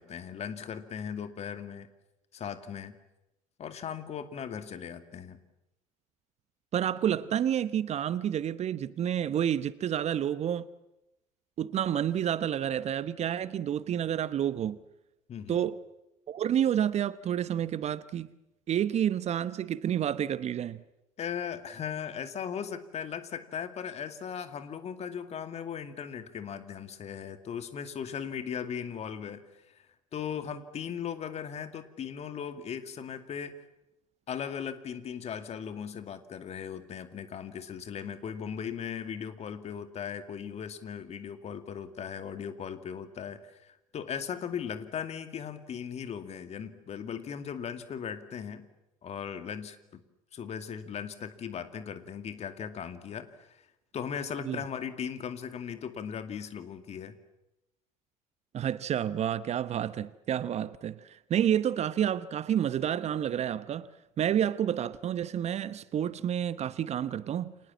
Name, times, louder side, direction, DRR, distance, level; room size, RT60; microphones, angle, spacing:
voice 1, 0.0-1.9 2.3-3.0 3.6-5.4 15.3-15.6 21.2-29.9 30.1-33.6 34.3-48.7 49.0-50.0 50.3-53.6 53.9-57.2, left 7 dB, 40° left, 2.4 m, -38 dB
voice 2, 6.7-10.7 11.6-14.8 15.5-15.8 16.3-18.3 18.7-20.8 54.4-54.6 58.5-63.9 64.2-67.5, right 10 dB, 40° right, 1.0 m, -29 dB
29.5 x 26.5 x 7.4 m
figure-of-eight pair, 65°, 17 cm